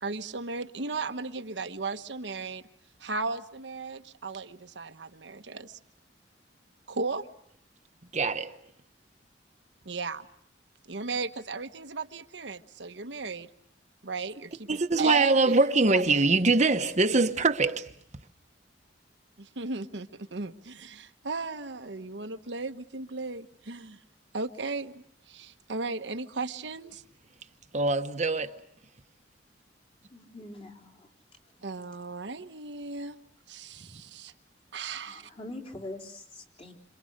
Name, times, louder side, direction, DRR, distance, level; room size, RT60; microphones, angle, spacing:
voice 1, 0.0-2.6 3.0-5.8 6.9-7.3 9.8-10.2 10.9-13.5 14.0-16.0 19.4-24.0 24.3-27.0 31.6-33.2 33.5-34.3 34.7-35.3, right 3 dB, 90° right, 1.2 m, -36 dB
voice 2, 8.1-8.5 14.7-17.9 27.7-28.6, right 3 dB, 40° right, 1.0 m, -23 dB
voice 3, 30.1-31.1 33.9-34.0 35.1-36.7, left 2 dB, 35° left, 3.9 m, -43 dB
29.0 x 26.5 x 6.6 m
head